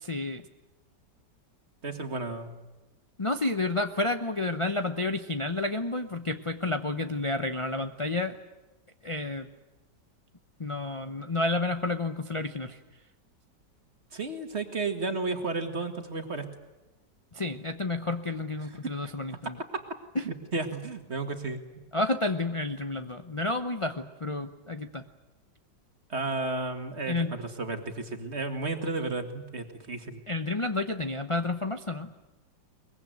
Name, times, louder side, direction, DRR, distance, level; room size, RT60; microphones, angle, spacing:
voice 1, 0.0-0.4 3.2-8.4 9.0-9.5 10.6-12.8 17.3-19.6 20.1-20.2 21.9-25.0 27.1-27.3 30.3-32.1, left 2 dB, 30° left, 8 dB, 0.6 m, -30 dB
voice 2, 1.8-2.5 14.1-16.4 19.0-19.1 20.2-21.6 26.1-30.2, right 3 dB, 40° right, 6 dB, 2.2 m, -33 dB
23.0 x 21.5 x 9.2 m, 1.1 s
omnidirectional pair, 1.9 m